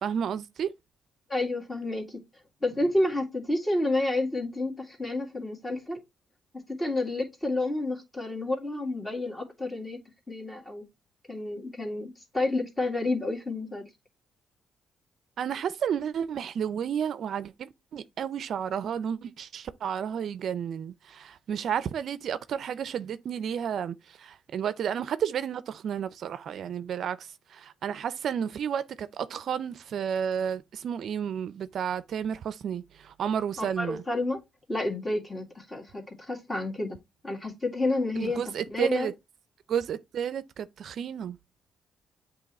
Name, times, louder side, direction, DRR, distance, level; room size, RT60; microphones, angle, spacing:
voice 1, 0.0-0.7 15.4-34.0 38.2-39.1 39.7-41.4, right 8 dB, 65° right, 0.4 m, -32 dB
voice 2, 1.3-2.2 2.6-6.0 6.5-10.0 10.3-10.8 11.3-13.9 33.6-34.4 34.7-37.0 37.2-38.4 38.7-39.1, left 2 dB, 20° left, 2.1 m, -30 dB
7.9 x 2.9 x 4.1 m
cardioid pair, 90°, 0 cm